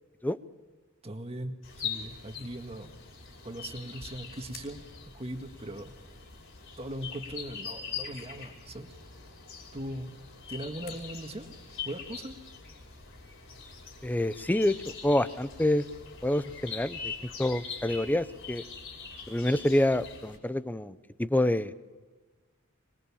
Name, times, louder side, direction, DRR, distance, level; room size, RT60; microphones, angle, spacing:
voice 1, 1.0-1.6 1.8-2.9 3.4-4.8 5.2-5.9 6.8-8.9 9.7-10.1 10.5-11.5 11.9-12.3, right 1 dB, 30° right, 5 dB, 1.9 m, -39 dB
sound 1, 1.6-20.4, left 6 dB, 65° left, 5.4 m, -43 dB
voice 2, 14.0-15.8 16.2-17.1 17.4-18.6 19.3-21.7, left 1 dB, 10° left, 14 dB, 0.7 m, -27 dB
24.5 x 21.5 x 7.2 m, 1.4 s
head